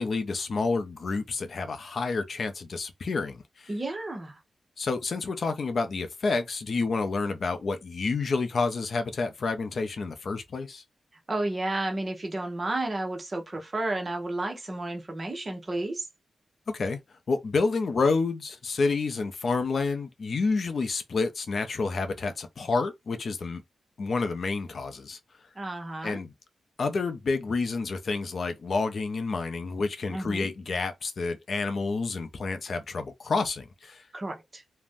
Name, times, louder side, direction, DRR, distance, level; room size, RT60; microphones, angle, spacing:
voice 1, 0.0-3.7 4.8-10.8 16.7-17.0 17.3-23.6 24.0-25.2 26.0-26.3 26.8-34.0, left 4 dB, 50° left, 0.4 m, -29 dB
voice 2, 3.7-4.4 11.3-16.1 25.5-26.2 30.1-30.5 34.1-34.6, right 2 dB, 30° right, 0.7 m, -32 dB
2.5 x 2.1 x 3.3 m
wide cardioid pair, 135°, 0 cm